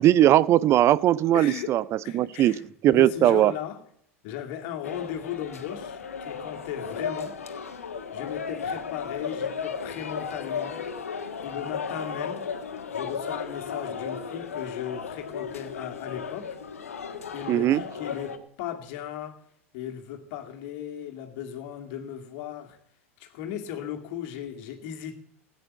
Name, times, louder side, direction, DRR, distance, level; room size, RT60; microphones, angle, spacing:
voice 1, 0.0-1.8 2.1-3.5 17.5-17.8, right 13 dB, 35° right, 0.5 m, -19 dB
voice 2, 1.3-1.8 2.0-3.8 4.2-7.4 8.1-10.8 11.4-12.5 12.9-16.6 17.3-19.4 19.7-22.8 23.2-25.2, left 10 dB, 55° left, 2.2 m, -36 dB
sound 1, 4.8-18.4, left 6 dB, 80° left, 1.6 m, -35 dB
16.0 x 9.2 x 8.5 m
figure-of-eight pair, 85°, 8 cm